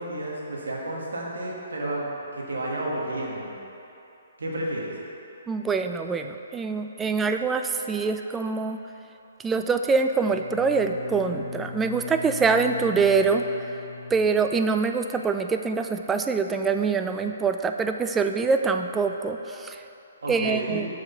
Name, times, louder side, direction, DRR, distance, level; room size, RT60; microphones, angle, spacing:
voice 1, 0.0-2.1 2.3-3.6 4.4-4.9 20.2-20.8, right 1 dB, 85° right, -3 dB, 1.6 m, -31 dB
voice 2, 5.5-8.8 9.4-13.4 14.1-19.8 20.3-20.9, right 4 dB, 10° right, 6 dB, 0.3 m, -24 dB
Bowed string instrument, 10.3-15.0, left 4 dB, 40° left, 0.7 m, -40 dB
6.4 x 4.9 x 5.6 m, 2.9 s
hypercardioid pair, 145°, 0 cm